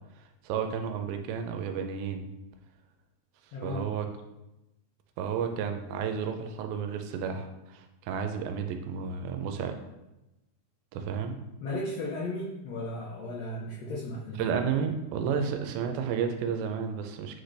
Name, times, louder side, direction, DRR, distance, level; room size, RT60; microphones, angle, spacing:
voice 1, 0.2-2.3 3.6-4.1 5.2-9.8 10.9-11.4 14.4-17.4, right 7 dB, 90° right, 6 dB, 2.4 m, -32 dB
voice 2, 3.5-3.9 11.6-14.4, left 1 dB, 85° left, -3 dB, 1.4 m, -35 dB
8.1 x 4.0 x 3.3 m, 0.97 s
omnidirectional pair, 4.2 m